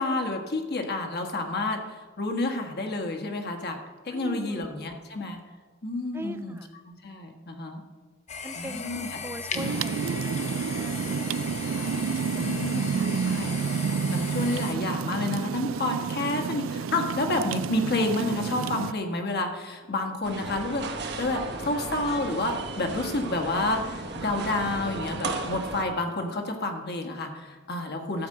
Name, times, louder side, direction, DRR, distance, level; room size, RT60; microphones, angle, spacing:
voice 1, 0.0-1.8 2.2-5.4 5.8-6.6 6.9-7.8 8.6-9.1 9.5-9.8 11.7-12.1 12.3-20.8 21.2-28.3, left 2 dB, 55° left, 3 dB, 1.5 m, -30 dB
voice 2, 4.1-4.9 6.1-6.7 8.4-11.4 21.5-21.7, right 1 dB, 10° right, 10 dB, 0.5 m, -41 dB
sound 1, 8.3-14.8, left 5 dB, 35° left, 0.8 m, -37 dB
sound 2, 9.6-18.9, right 6 dB, 70° right, 0.4 m, -30 dB
sound 3, 20.2-25.8, right 3 dB, 55° right, 1.1 m, -35 dB
13.0 x 5.2 x 7.8 m, 1.4 s
head